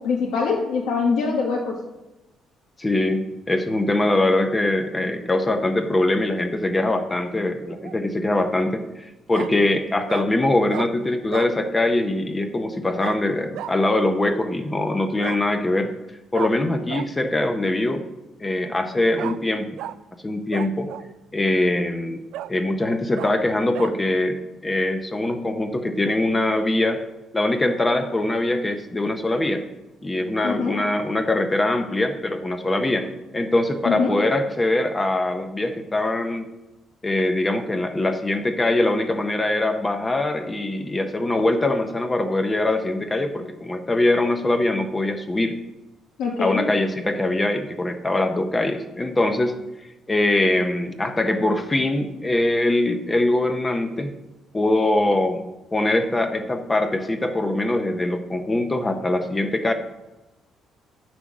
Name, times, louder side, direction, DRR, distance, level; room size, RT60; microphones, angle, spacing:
voice 1, 0.0-1.8 30.4-30.8 33.8-34.2 46.2-46.7, left 5 dB, 85° left, -2 dB, 1.3 m, -24 dB
voice 2, 2.8-15.9 16.3-18.0 18.4-19.8 20.2-20.9 21.3-22.2 22.5-27.0 27.3-29.6 30.0-33.1 33.3-36.5 37.0-45.6 46.4-49.6 50.1-54.1 54.5-55.4 55.7-59.7, left 2 dB, 15° left, 7 dB, 0.6 m, -22 dB
Bark, 7.6-8.0 9.3-9.5 10.1-10.3 10.7-10.9 11.3-11.5 13.0-13.2 13.5-13.7 15.2-15.4 16.3-16.5 16.9-17.1 19.2-19.4 19.8-20.0 20.5-21.1 21.7-21.8 22.3-22.5 23.2-23.3 23.7-23.9, right 12 dB, 85° right, 0.3 m, -33 dB
8.1 x 6.1 x 6.0 m, 1.0 s
cardioid pair, 170°, 0 cm